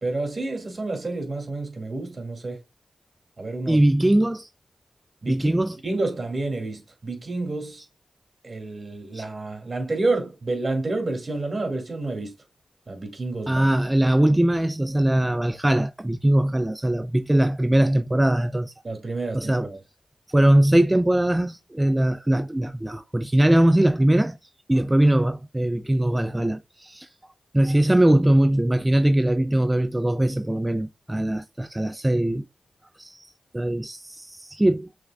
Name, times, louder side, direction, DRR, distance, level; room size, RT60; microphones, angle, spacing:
voice 1, 0.0-2.6 3.4-3.8 5.2-5.5 5.8-7.8 8.4-12.3 12.9-13.7 14.3-14.4 18.8-19.8, right 2 dB, 45° right, 2.1 m, -29 dB
voice 2, 3.7-4.5 5.3-5.8 9.1-9.2 13.5-18.7 19.3-19.7 20.3-24.4 24.7-27.1 27.5-32.5 33.0-34.9, right 1 dB, 15° right, 0.3 m, -21 dB
6.5 x 3.5 x 2.2 m
cardioid pair, 45°, 0 cm